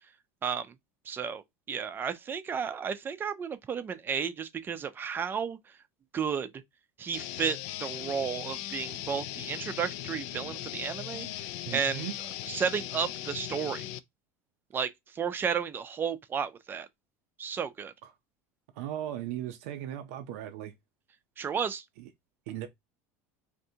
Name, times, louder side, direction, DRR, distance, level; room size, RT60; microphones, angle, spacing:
voice 1, 0.4-0.7 1.1-1.4 1.7-5.6 6.1-6.5 7.0-11.5 11.7-12.1 12.5-13.9 14.7-16.9 17.4-17.9 21.4-21.8, right 7 dB, 25° right, 0.5 m, -33 dB
sound 1, 7.1-14.0, left 13 dB, 70° left, 0.3 m, -39 dB
voice 2, 11.7-12.1 18.0-18.1 18.8-20.7 22.0-22.1 22.5-22.7, right 12 dB, 80° right, 0.5 m, -37 dB
3.5 x 2.6 x 2.7 m
supercardioid pair, 115°, 8 cm